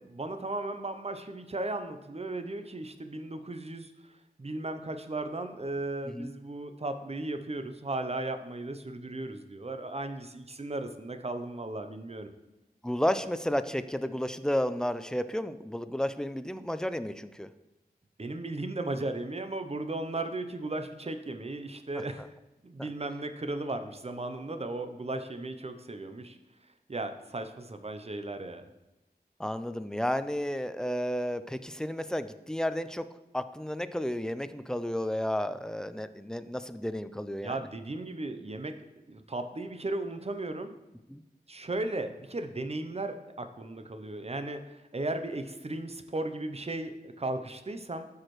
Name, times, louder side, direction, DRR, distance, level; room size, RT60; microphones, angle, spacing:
voice 1, 0.0-3.9 4.4-12.3 18.2-22.2 22.6-26.4 26.9-28.6 37.4-38.8 39.1-40.8 41.5-48.1, right 2 dB, 40° right, 8 dB, 0.6 m, -36 dB
voice 2, 12.8-17.5 22.2-22.3 22.8-22.9 29.4-33.1 33.3-37.6 41.1-41.2, equal, 5° left, 12 dB, 0.4 m, -32 dB
13.0 x 4.8 x 3.1 m, 0.99 s
wide cardioid pair, 70°, 16 cm